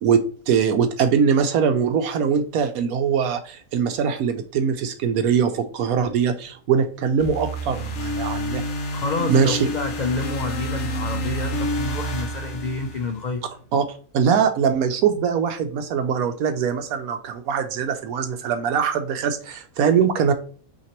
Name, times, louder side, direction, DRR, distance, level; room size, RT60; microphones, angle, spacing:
voice 1, 0.0-8.6 9.2-9.7 13.7-13.8 14.1-20.3, right 7 dB, 80° right, 7 dB, 1.0 m, -22 dB
sound 1, 7.2-13.4, equal, 60° left, 1.0 m, -29 dB
voice 2, 8.9-13.4, left 3 dB, 85° left, 4 dB, 0.4 m, -28 dB
5.7 x 2.9 x 2.9 m, 0.43 s
omnidirectional pair, 1.5 m